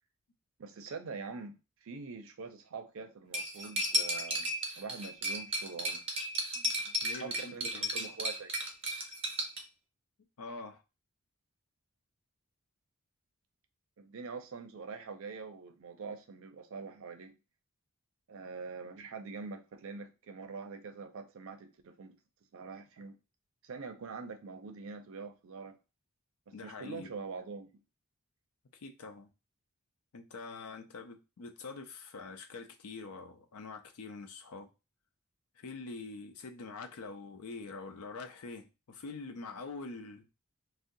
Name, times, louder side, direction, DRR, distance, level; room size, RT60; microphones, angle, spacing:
voice 1, 0.6-1.6 1.8-6.0 7.2-8.5 14.0-17.4 18.3-22.2 22.5-23.2 23.6-25.8 26.5-27.7, right 4 dB, 65° right, 0.5 m, -44 dB
Cutlery silverware, 3.3-9.6, equal, 25° right, 0.7 m, -34 dB
voice 2, 6.5-7.9 10.4-10.8 26.5-27.1 28.7-29.3 30.1-34.7 35.6-40.3, left 3 dB, 80° left, 0.5 m, -45 dB
2.6 x 2.1 x 3.7 m
head